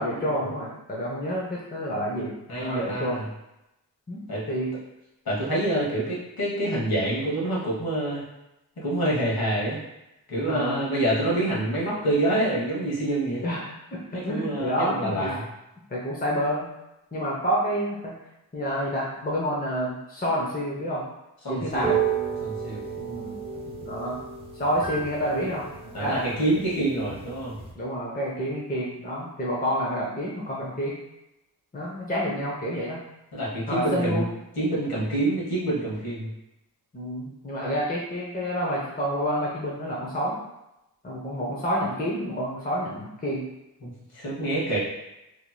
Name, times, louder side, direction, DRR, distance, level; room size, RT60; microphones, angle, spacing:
voice 1, 0.0-3.2 4.1-4.7 10.5-10.9 13.4-15.3 15.9-16.7 17.1-18.1 18.5-21.0 21.5-21.9 23.0-23.3 23.8-24.2 24.5-26.4 27.7-31.0 31.7-33.0 33.7-34.3 36.9-40.4 41.0-43.4, equal, 20° left, -5 dB, 0.8 m, -29 dB
voice 2, 2.5-3.2 4.3-4.4 5.2-8.2 8.8-9.8 10.3-13.4 14.1-15.4 21.4-21.9 22.4-22.8 25.9-27.5 33.3-34.2 34.6-36.3 43.8-44.8, right 1 dB, 60° left, -6 dB, 1.4 m, -27 dB
sound 1, 21.7-27.7, right 7 dB, 15° right, 0.6 m, -32 dB
3.0 x 2.8 x 2.3 m, 0.91 s
cardioid pair, 60°, 40 cm